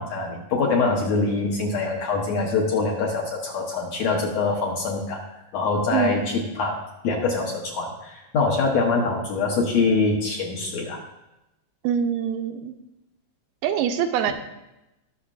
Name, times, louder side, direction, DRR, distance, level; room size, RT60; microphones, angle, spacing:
voice 1, 0.0-5.2 5.5-11.0, left 3 dB, 65° left, -1 dB, 1.8 m, -24 dB
voice 2, 11.8-12.7 13.6-14.3, right 9 dB, 85° right, 6 dB, 2.3 m, -24 dB
19.0 x 6.5 x 2.5 m, 0.94 s
omnidirectional pair, 4.1 m